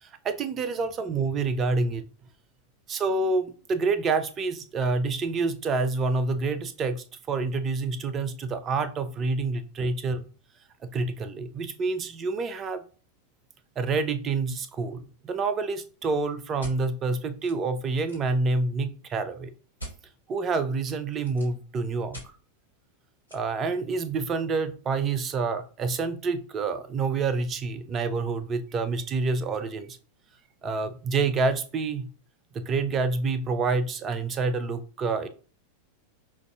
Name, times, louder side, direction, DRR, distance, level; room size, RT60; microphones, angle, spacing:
voice 1, 0.0-2.1 2.9-10.2 10.8-12.8 13.8-19.5 20.3-22.2 23.3-30.0 30.6-32.1 32.5-35.3, right 4 dB, 25° right, 11 dB, 0.4 m, -28 dB
sound 1, 16.6-16.8 17.4-17.5 17.8-18.3 19.8-19.9 20.8-21.6 22.1-22.3 23.3-23.4, right 1 dB, 90° left, 1.8 m, -42 dB
5.7 x 2.5 x 2.2 m, 0.39 s
figure-of-eight pair, 90°, 0 cm